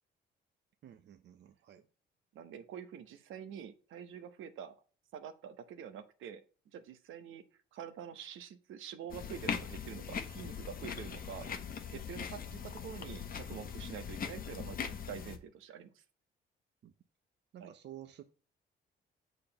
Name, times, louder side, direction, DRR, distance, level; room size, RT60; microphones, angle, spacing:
voice 1, 0.8-1.9 11.3-11.6 16.8-16.9 17.5-18.2, right 11 dB, 60° right, 0.7 m, -52 dB
voice 2, 2.3-4.7 5.1-6.4 6.7-7.4 7.7-11.4 11.9-16.0 17.6-17.7, right 8 dB, 85° right, 1.0 m, -46 dB
sound 1, 9.1-15.4, left 7 dB, 45° left, 0.9 m, -41 dB
6.8 x 4.0 x 5.2 m
cardioid pair, 90°, 20 cm